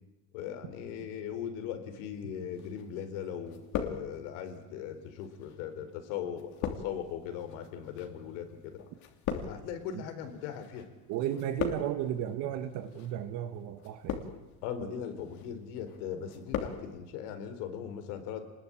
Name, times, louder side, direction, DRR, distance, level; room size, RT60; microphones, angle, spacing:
voice 1, 0.3-8.8 9.3-10.9 14.6-18.4, left 8 dB, 85° left, 7 dB, 4.4 m, -39 dB
sound 1, 2.6-3.2 3.5-4.5 5.2-10.9 11.1-12.1 12.8-13.1 13.8-14.6 15.0-15.5 15.9-16.8 17.1-17.2, left 8 dB, 50° left, 3.0 m, -38 dB
voice 2, 11.1-14.2 14.8-15.0, right 11 dB, 50° right, 8 dB, 1.7 m, -34 dB
28.5 x 20.5 x 9.0 m, 1.1 s
cardioid pair, 170°, 37 cm